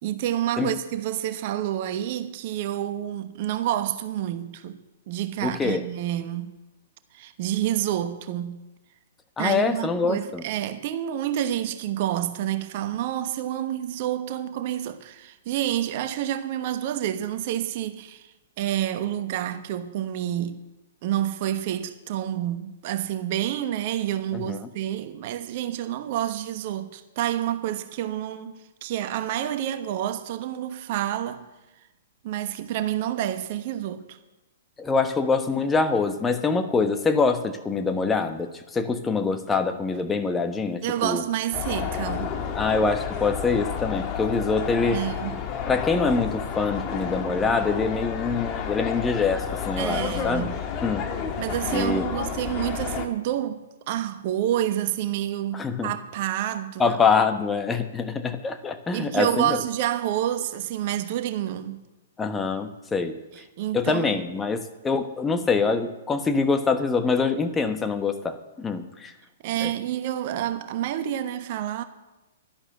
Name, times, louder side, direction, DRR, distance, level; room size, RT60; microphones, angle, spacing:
voice 1, 0.0-4.8 5.1-6.6 7.1-8.6 9.4-20.6 21.0-31.4 32.2-34.2 40.8-42.3 44.8-45.4 49.8-50.6 51.4-53.6 53.9-57.0 58.9-61.8 63.3-64.1 69.4-71.8, right 12 dB, 45° right, 1.1 m, -28 dB
voice 2, 5.4-5.8 9.4-10.4 24.3-24.6 34.8-41.2 42.6-45.0 45.7-50.4 50.8-51.0 51.7-52.1 55.5-55.9 56.8-59.6 62.2-63.2 63.7-69.1 69.6-69.7, left 4 dB, 15° left, 1.1 m, -25 dB
sound 1, 41.5-53.1, left 7 dB, 30° left, 1.6 m, -31 dB
11.5 x 11.0 x 7.7 m
figure-of-eight pair, 115°, 0 cm